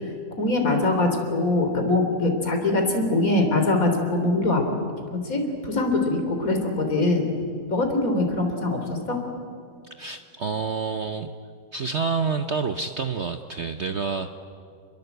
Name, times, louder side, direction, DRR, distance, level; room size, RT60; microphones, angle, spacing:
voice 1, 0.4-4.6 5.2-7.2 7.7-9.2, left 2 dB, 50° left, 4 dB, 3.9 m, -23 dB
voice 2, 9.8-11.3 11.7-14.3, right 5 dB, 50° right, 8 dB, 1.0 m, -28 dB
30.0 x 21.5 x 8.1 m, 2.3 s
omnidirectional pair, 1.9 m